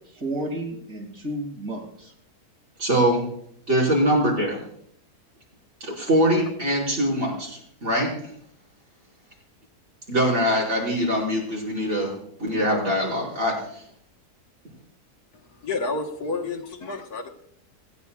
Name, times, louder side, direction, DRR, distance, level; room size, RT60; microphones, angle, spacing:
voice 1, 0.1-2.1, right 1 dB, 70° right, 1 dB, 3.1 m, -32 dB
voice 2, 2.8-3.2 3.7-4.6 5.8-8.1 10.1-12.1 12.4-13.8, equal, 45° right, -4 dB, 5.8 m, -23 dB
voice 3, 15.6-17.3, left 3 dB, 75° left, 2 dB, 1.9 m, -29 dB
27.5 x 9.8 x 2.4 m, 0.67 s
omnidirectional pair, 1.7 m